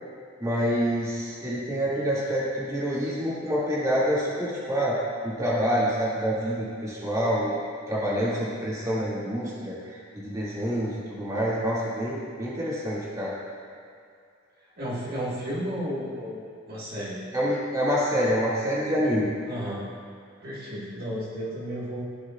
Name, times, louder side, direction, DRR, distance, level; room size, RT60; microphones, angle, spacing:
voice 1, 0.4-5.0 5.2-7.5 7.9-9.8 10.1-13.3 17.3-19.3, equal, 20° right, -8 dB, 2.3 m, -27 dB
voice 2, 14.8-17.2 19.4-19.8 20.4-22.0, equal, 50° right, -8 dB, 1.7 m, -33 dB
15.5 x 6.4 x 2.4 m, 2.3 s
head